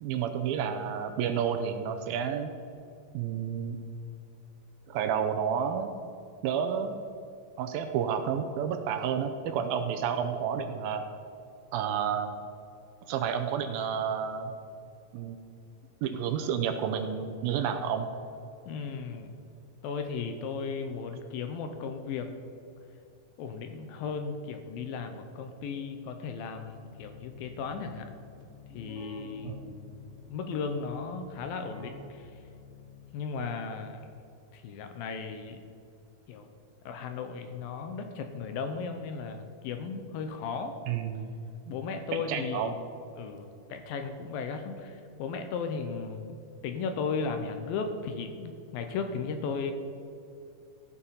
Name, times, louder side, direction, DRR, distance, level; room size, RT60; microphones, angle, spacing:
voice 1, 0.0-2.5 3.1-3.8 4.9-5.9 6.4-7.0 7.6-11.0 11.7-12.4 13.1-14.5 15.1-15.4 16.0-18.1 29.4-29.8 40.9-41.4 41.7-41.8 42.1-42.8, right 8 dB, 80° right, 7 dB, 2.3 m, -30 dB
voice 2, 18.7-19.3 19.8-22.3 23.4-28.1 28.7-29.6 30.3-32.3 33.1-34.0 34.5-35.6 36.3-36.5 36.9-40.8 41.7-42.8 43.2-46.2 46.6-49.7, left 5 dB, 80° left, 6 dB, 2.3 m, -35 dB
Keyboard (musical), 26.5-33.4, left 3 dB, 40° right, 1.6 m, -49 dB
15.0 x 6.7 x 5.6 m, 2.7 s
omnidirectional pair, 4.6 m